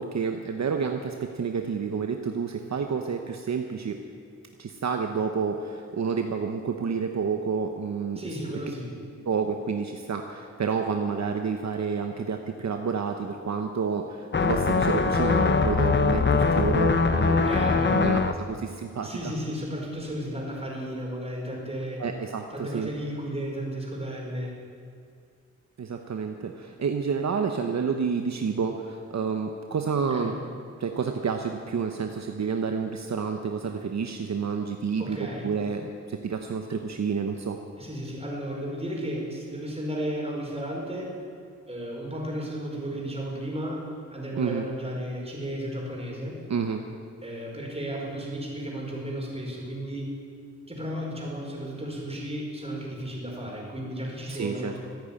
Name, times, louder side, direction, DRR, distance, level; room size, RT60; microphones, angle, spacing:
voice 1, 0.0-4.0 4.6-8.2 9.2-17.5 17.9-19.3 22.0-22.9 25.8-30.3 30.8-37.6 44.4-44.6 46.5-46.8 54.3-54.8, right 5 dB, 65° right, 4 dB, 1.0 m, -29 dB
voice 2, 8.2-8.9 17.4-18.0 19.0-22.0 22.5-24.5 30.1-30.4 35.0-35.5 37.8-41.1 41.7-46.4 47.2-50.2 50.7-54.8, equal, 20° right, -2 dB, 5.0 m, -34 dB
sound 1, 14.3-18.3, left 4 dB, 40° left, 0.9 m, -22 dB
14.5 x 9.5 x 8.9 m, 2.3 s
cardioid pair, 65°, 30 cm